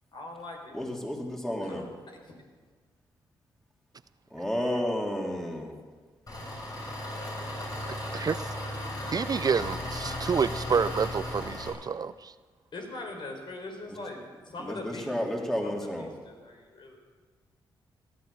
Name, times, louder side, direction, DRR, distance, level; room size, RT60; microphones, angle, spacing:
voice 1, 0.1-0.8 1.6-1.8 7.0-8.3 12.7-15.1 15.6-17.0, left 2 dB, 60° left, 2 dB, 4.5 m, -42 dB
voice 2, 0.7-1.9 4.3-5.7 14.6-16.1, equal, 5° left, 0 dB, 3.4 m, -31 dB
Engine, 6.3-11.7, left 1 dB, 40° left, 6.5 m, -35 dB
voice 3, 9.1-12.3, right 6 dB, 45° right, 15 dB, 0.4 m, -28 dB
17.5 x 11.5 x 7.0 m, 1.5 s
cardioid pair, 60°, 9 cm